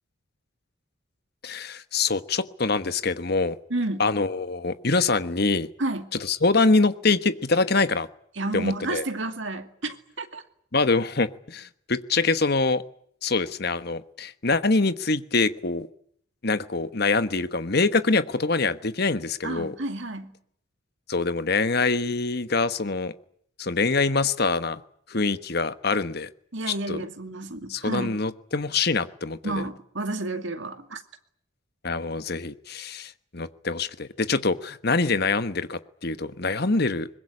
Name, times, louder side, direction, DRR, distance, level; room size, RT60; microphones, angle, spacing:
voice 1, 1.4-3.6 4.0-5.7 6.2-8.1 8.5-9.0 10.7-12.8 13.2-15.9 16.4-19.7 21.1-23.1 23.6-24.8 25.1-26.3 26.7-27.0 27.7-29.6 31.8-37.1, left 3 dB, 50° left, 1.2 m, -24 dB
voice 2, 3.7-4.0 5.8-6.1 8.4-10.4 19.4-20.3 26.5-28.2 29.4-31.0, right 2 dB, 65° right, 2.3 m, -31 dB
23.0 x 21.0 x 9.8 m
head